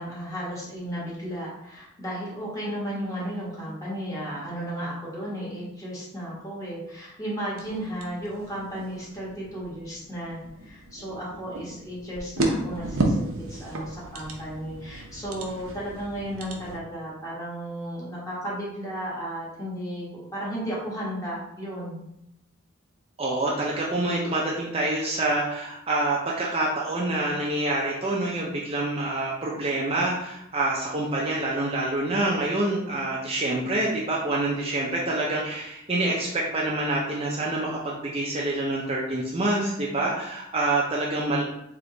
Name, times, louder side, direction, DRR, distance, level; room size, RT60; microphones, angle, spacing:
voice 1, 0.0-22.0, equal, 15° left, -7 dB, 1.4 m, -34 dB
sound 1, 7.6-16.8, right 2 dB, 80° right, 0.7 m, -33 dB
voice 2, 23.2-41.4, right 2 dB, 30° right, -4 dB, 0.5 m, -26 dB
3.5 x 2.9 x 3.8 m, 0.81 s
head